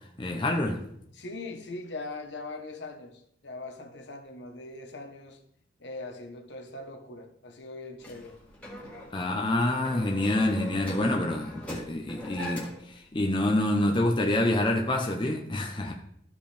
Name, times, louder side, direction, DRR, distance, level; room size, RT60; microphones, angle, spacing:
voice 1, 0.2-0.8 9.1-15.9, left 1 dB, 25° left, 0.7 m, -27 dB
voice 2, 1.1-5.4 5.8-8.4, left 2 dB, 60° left, 1.1 m, -41 dB
sound 1, 8.0-12.9, left 1 dB, 5° left, 1.9 m, -41 dB
13.5 x 5.2 x 3.4 m
head